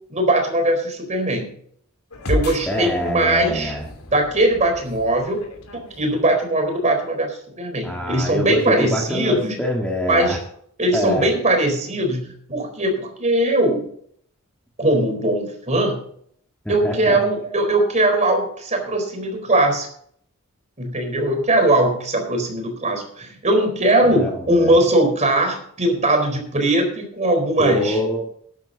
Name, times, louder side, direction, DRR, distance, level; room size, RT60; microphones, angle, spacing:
voice 1, 0.1-1.5 2.3-3.7 4.1-5.4 5.7-9.5 10.1-10.4 10.8-13.9 14.8-16.0 16.7-19.9 20.8-28.0, right 1 dB, 35° right, 4 dB, 4.2 m, -20 dB
sound 1, 2.1-6.8, left 1 dB, 90° left, 2.8 m, -32 dB
voice 2, 2.7-3.8 7.8-10.4 10.9-11.3 16.7-17.2 24.0-24.7 27.6-28.3, left 1 dB, 5° left, -1 dB, 1.9 m, -24 dB
13.5 x 11.5 x 4.0 m, 0.62 s
head